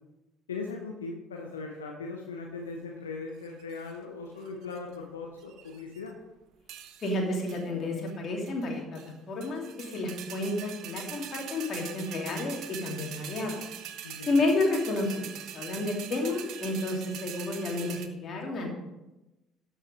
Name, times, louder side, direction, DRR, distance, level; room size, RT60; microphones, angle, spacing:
voice 1, 0.5-6.1 14.0-14.3, left 4 dB, 80° left, 1 dB, 0.9 m, -39 dB
sound 1, 3.4-3.9 4.5-5.0 5.4-6.1 6.7-7.2 7.5-7.7 8.1-8.2 8.5-9.1 9.4-18.1, right 10 dB, 60° right, 0.8 m, -43 dB
voice 2, 7.0-9.0 9.3-13.6 14.3-18.7, left 2 dB, 45° left, 0 dB, 2.6 m, -31 dB
12.5 x 5.3 x 5.1 m, 1.0 s
figure-of-eight pair, 55°, 0 cm